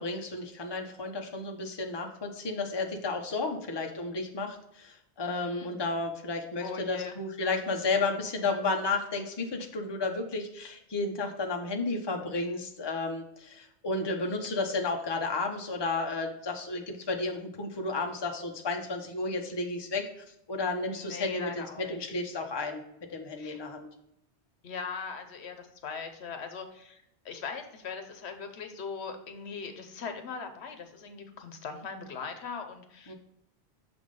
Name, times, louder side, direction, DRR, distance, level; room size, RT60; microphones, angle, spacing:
voice 1, 0.0-22.8 23.1-23.9 33.1-33.2, left 3 dB, 25° left, 3 dB, 0.8 m, -32 dB
voice 2, 5.4-5.8 6.6-7.2 20.9-22.0 23.4-23.6 24.6-33.1, left 5 dB, 75° left, 6 dB, 1.1 m, -40 dB
6.5 x 3.5 x 5.1 m, 0.78 s
omnidirectional pair, 1.1 m